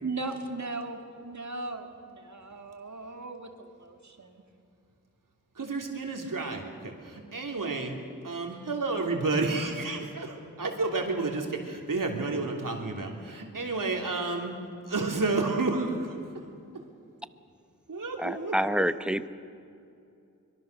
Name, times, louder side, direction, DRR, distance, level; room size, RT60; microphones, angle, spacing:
voice 1, 0.0-4.4, right 3 dB, 60° right, 2.2 m, -38 dB
voice 2, 5.5-8.0 8.2-14.5 14.9-16.2 17.9-18.5, right 3 dB, 80° right, 3.2 m, -30 dB
voice 3, 18.2-19.3, equal, 5° right, 0.8 m, -27 dB
24.0 x 23.0 x 6.7 m
wide cardioid pair, 90°, 33 cm